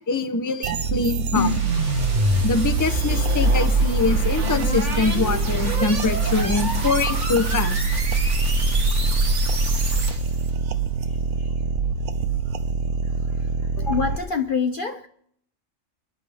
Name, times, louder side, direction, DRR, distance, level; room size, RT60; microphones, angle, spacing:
voice 1, 0.1-1.5 2.4-7.7, left 3 dB, 15° left, 0.8 m, -24 dB
sound 1, 0.6-14.2, right 5 dB, 90° right, 1.3 m, -25 dB
sound 2, 1.3-10.4, equal, 55° right, 2.3 m, -24 dB
voice 2, 13.8-15.1, left 5 dB, 45° left, 0.8 m, -25 dB
28.0 x 11.0 x 3.5 m
omnidirectional pair, 1.4 m